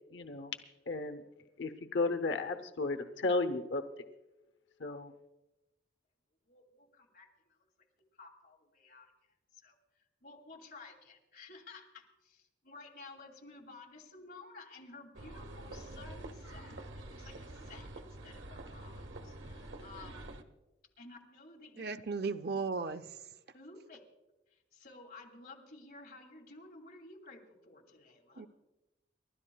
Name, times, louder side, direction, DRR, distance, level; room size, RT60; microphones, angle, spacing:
voice 1, 0.1-0.6 0.9-1.2 1.6-3.8 4.8-5.1, left 3 dB, 85° left, 8 dB, 0.8 m, -34 dB
voice 2, 6.5-7.6 8.2-9.1 9.6-9.8 10.2-20.3 21.0-21.8 23.5-24.0 24.5-28.5, left 3 dB, 55° left, 1 dB, 2.4 m, -53 dB
sound 1, 15.1-20.4, right 1 dB, 90° right, 1.0 m, -47 dB
voice 3, 21.8-23.2 28.4-28.5, right 4 dB, 55° right, 10 dB, 0.6 m, -36 dB
29.5 x 12.5 x 2.3 m, 1.0 s
head